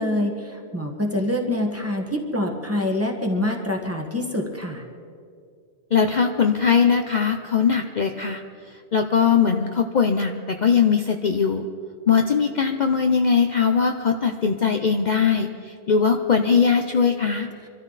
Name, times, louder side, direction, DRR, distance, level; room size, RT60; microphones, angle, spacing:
voice 1, 0.0-4.8, left 1 dB, 15° right, 1 dB, 1.6 m, -25 dB
voice 2, 5.9-8.4 8.9-11.7 12.1-17.5, left 6 dB, 45° left, 4 dB, 0.8 m, -20 dB
25.5 x 13.0 x 4.1 m, 2.3 s
omnidirectional pair, 1.1 m